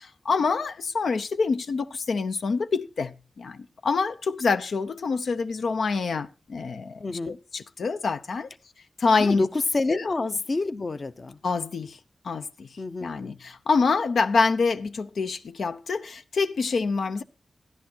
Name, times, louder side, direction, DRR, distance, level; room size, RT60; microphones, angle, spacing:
voice 1, 0.0-3.6 3.8-8.5 9.0-9.4 9.9-10.0 11.4-12.0 12.2-12.7 13.0-17.2, left 4 dB, 80° left, 0.7 m, -26 dB
voice 2, 7.0-7.4 9.2-11.4 12.8-13.3, left 3 dB, 45° left, 0.7 m, -28 dB
14.0 x 10.5 x 4.4 m
wide cardioid pair, 95°, 0 cm